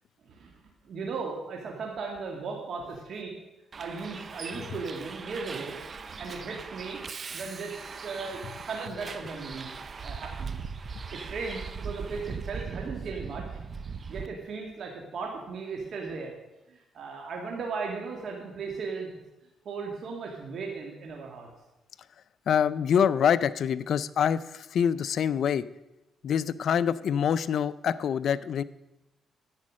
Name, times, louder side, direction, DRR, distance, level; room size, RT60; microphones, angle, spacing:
voice 1, 0.3-3.3 3.8-5.8 6.2-7.0 7.3-9.7 10.0-10.6 11.1-13.5 14.1-16.3 16.7-19.1 19.6-21.5, right 4 dB, 60° right, 0 dB, 2.0 m, -37 dB
Bus, 3.7-14.3, right 5 dB, 40° right, 0.6 m, -39 dB
voice 2, 22.5-25.6 26.2-28.6, left 8 dB, 65° left, 16 dB, 0.4 m, -25 dB
10.5 x 8.4 x 6.3 m, 0.96 s
cardioid pair, 90°, 0 cm